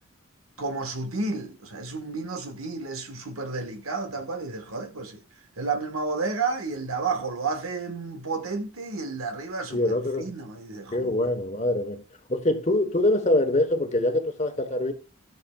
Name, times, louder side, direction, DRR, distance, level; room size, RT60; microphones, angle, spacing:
voice 1, 0.6-5.2 5.6-11.1, right 4 dB, 90° right, 1.4 m, -31 dB
voice 2, 9.7-10.3 10.9-12.0 12.3-14.9, left 1 dB, 30° left, 1.1 m, -24 dB
13.5 x 6.7 x 2.3 m
head